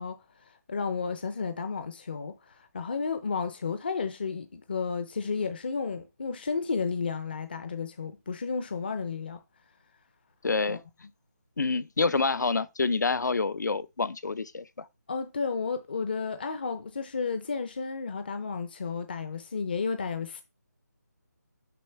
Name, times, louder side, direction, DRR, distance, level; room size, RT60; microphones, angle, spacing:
voice 1, 0.0-9.4 10.6-10.8 15.1-20.4, left 5 dB, 35° left, 0.5 m, -32 dB
voice 2, 10.4-10.8 11.6-14.9, left 4 dB, 80° left, 0.6 m, -27 dB
6.8 x 5.5 x 3.1 m
figure-of-eight pair, 170°, 10 cm